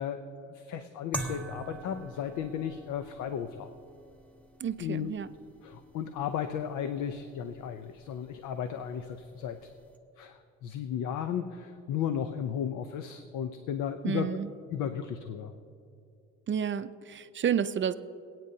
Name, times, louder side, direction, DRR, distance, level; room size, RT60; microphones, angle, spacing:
voice 1, 0.0-3.7 4.8-5.1 5.6-9.7 10.2-14.4 14.7-15.5, left 8 dB, 90° left, 8 dB, 0.7 m, -35 dB
sound 1, 1.1-10.0, right 1 dB, 5° left, 1.3 m, -45 dB
voice 2, 4.6-5.3 14.0-14.5 16.5-17.9, right 8 dB, 40° right, 12 dB, 0.5 m, -30 dB
27.0 x 9.1 x 2.8 m, 2.4 s
cardioid pair, 90°, 30 cm